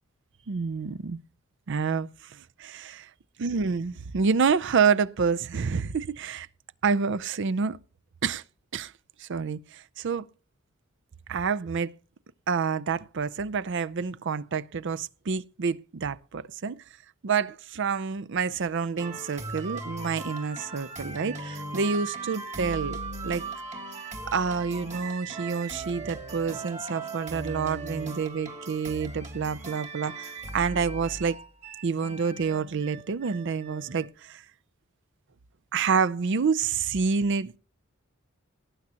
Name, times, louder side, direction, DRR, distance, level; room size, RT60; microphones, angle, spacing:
voice 1, 0.5-1.2 1.7-3.1 3.4-6.5 6.8-7.8 8.2-8.4 8.7-8.9 9.2-10.2 11.3-11.9 12.5-16.8 17.2-23.0 23.2-23.5 24.3-31.4 31.8-34.4 35.7-37.6, right 5 dB, 60° right, 0.5 m, -28 dB
sound 1, 19.0-34.1, right 3 dB, 35° right, 2.2 m, -38 dB
18.0 x 9.7 x 2.9 m
head